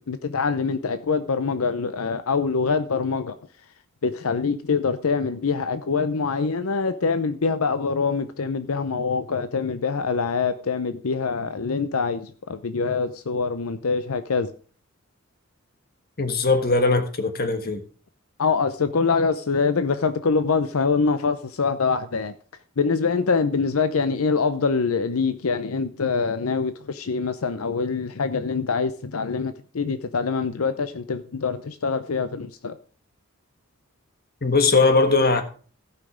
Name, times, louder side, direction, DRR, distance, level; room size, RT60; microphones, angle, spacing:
voice 1, 0.0-3.4 4.0-14.5 18.4-22.3 22.8-32.8, left 5 dB, 80° left, 0.7 m, -24 dB
voice 2, 16.2-17.8 34.4-35.4, left 3 dB, 45° left, 1.5 m, -20 dB
15.5 x 5.8 x 5.0 m
head